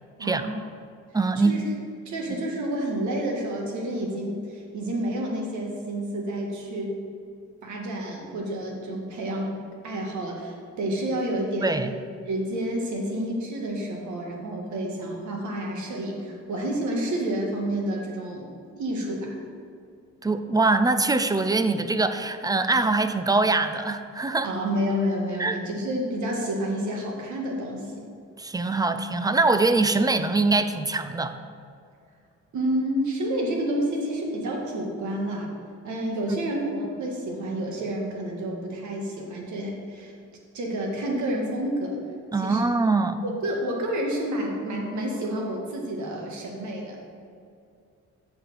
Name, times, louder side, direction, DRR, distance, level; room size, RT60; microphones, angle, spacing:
voice 1, 0.2-0.6 1.4-1.6 2.1-7.0 7.6-9.5 9.8-11.8 12.3-18.5 18.8-19.4 24.4-28.1 32.5-35.5 35.8-40.1 40.5-42.0 42.3-42.7 43.2-47.0, right 1 dB, 75° right, 0 dB, 1.7 m, -29 dB
voice 2, 1.1-1.5 11.6-12.0 20.2-24.5 25.4-25.6 28.4-31.4 42.3-43.2, right 3 dB, 15° right, 10 dB, 0.4 m, -23 dB
7.8 x 4.3 x 6.7 m, 2.4 s
cardioid pair, 90°, 30 cm